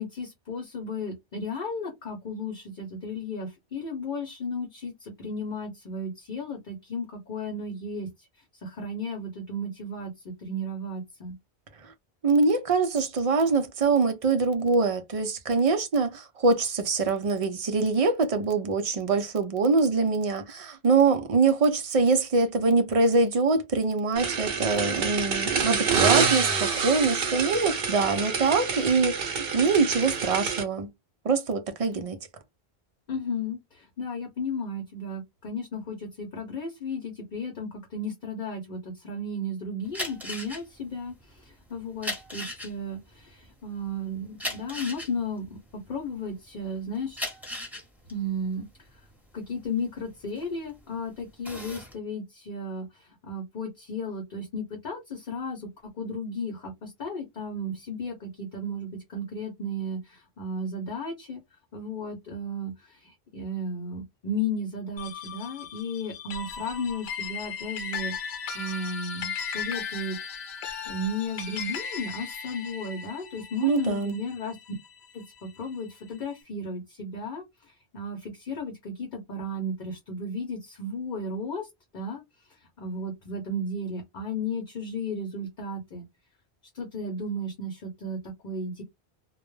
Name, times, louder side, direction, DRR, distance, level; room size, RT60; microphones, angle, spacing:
voice 1, 0.0-8.3 8.6-11.3 33.1-47.2 48.1-49.0 49.3-55.7 56.0-61.4 61.7-68.1 68.5-70.2 70.8-74.6 75.1-81.7 81.9-82.2 82.5-86.0 86.7-88.8, left 1 dB, 55° left, 0.8 m, -34 dB
voice 2, 12.2-30.9 31.2-32.2 73.6-74.2, right 4 dB, 50° right, 0.4 m, -24 dB
sound 1, 24.2-30.6, right 5 dB, 65° right, 0.8 m, -27 dB
sound 2, 39.8-46.5 46.9-50.8 51.2-51.9, left 1 dB, ahead, 1.0 m, -37 dB
sound 3, 65.0-75.6, left 6 dB, 80° left, 0.9 m, -37 dB
2.2 x 2.1 x 3.1 m
omnidirectional pair, 1.0 m